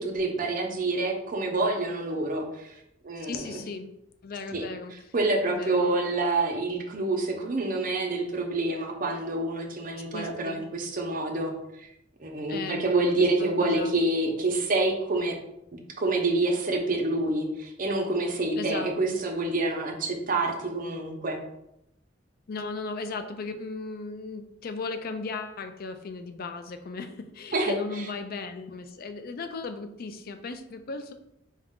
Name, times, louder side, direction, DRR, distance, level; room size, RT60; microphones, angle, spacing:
voice 1, 0.0-2.8 3.0-3.6 4.5-4.6 5.1-11.9 12.2-15.4 16.0-21.4 27.5-28.1, right 2 dB, 45° right, 1 dB, 0.7 m, -27 dB
voice 2, 3.3-3.9 4.2-4.9 5.5-6.0 10.1-10.6 12.5-12.9 13.2-13.9 18.6-19.2 22.5-31.1, left 4 dB, 50° left, 8 dB, 0.4 m, -36 dB
4.1 x 2.4 x 3.6 m, 0.82 s
head